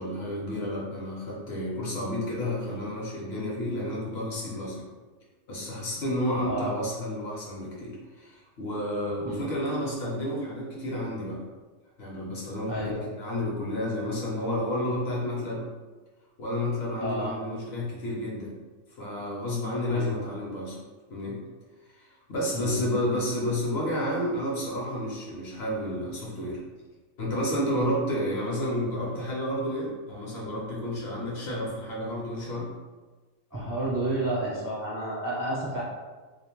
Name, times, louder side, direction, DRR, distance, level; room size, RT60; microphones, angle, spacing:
voice 1, 0.0-4.9 5.5-11.4 12.0-15.6 16.4-18.5 19.0-20.8 21.1-21.4 22.0-26.6 27.2-32.7, left 1 dB, 60° left, -4 dB, 0.8 m, -31 dB
voice 2, 12.7-13.1 17.0-17.3 19.9-20.2 22.5-22.8 33.5-35.8, right 1 dB, 35° right, -8 dB, 0.3 m, -31 dB
2.4 x 2.0 x 2.9 m, 1.3 s
omnidirectional pair, 1.4 m